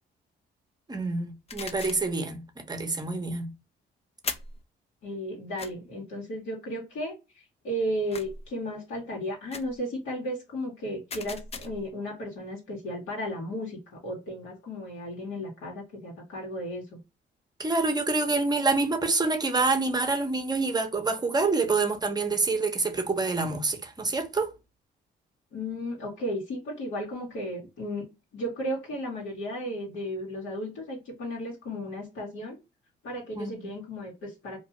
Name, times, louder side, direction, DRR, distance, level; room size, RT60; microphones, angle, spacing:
voice 1, 0.9-3.5 17.6-24.5 33.4-33.5, right 3 dB, 20° right, 0.7 m, -27 dB
sound 1, 1.5-2.1 4.2-4.6 5.6-5.7 8.1-8.5 9.5-9.8 11.1-11.9, left 4 dB, 30° left, 0.5 m, -38 dB
voice 2, 5.0-7.1 7.6-17.0 25.5-28.1 28.3-32.6 33.0-34.6, equal, 80° left, 1.4 m, -34 dB
2.6 x 2.3 x 2.9 m
cardioid pair, 90°, 20 cm